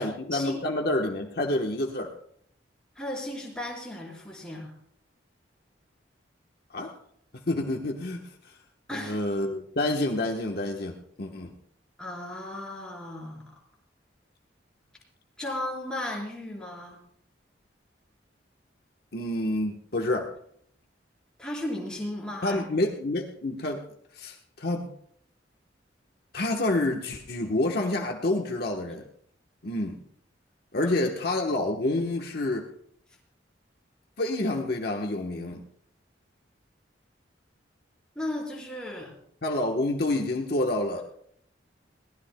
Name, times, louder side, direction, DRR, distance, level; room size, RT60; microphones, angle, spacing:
voice 1, 0.0-2.1 6.7-6.9 7.5-8.5 8.9-11.5 19.1-20.3 22.4-23.8 24.1-24.9 26.3-29.0 29.6-30.0 30.7-32.7 34.2-35.6 39.4-41.0, left 2 dB, 55° left, 1 dB, 1.2 m, -28 dB
voice 2, 3.0-4.7 8.9-9.2 12.0-13.5 15.4-17.0 21.4-22.6 30.8-30.9 38.1-39.1, left 1 dB, 5° left, -4 dB, 4.5 m, -35 dB
22.0 x 18.5 x 2.3 m, 0.67 s
head